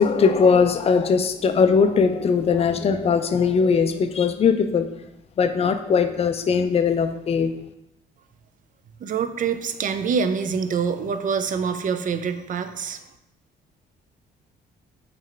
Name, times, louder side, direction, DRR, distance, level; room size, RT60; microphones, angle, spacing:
voice 1, 0.0-4.9 5.4-7.5, left 5 dB, 30° left, 8 dB, 0.4 m, -20 dB
voice 2, 9.0-13.0, right 6 dB, 40° right, 9 dB, 0.4 m, -25 dB
3.7 x 3.2 x 3.2 m, 0.87 s
cardioid pair, 90°, 20 cm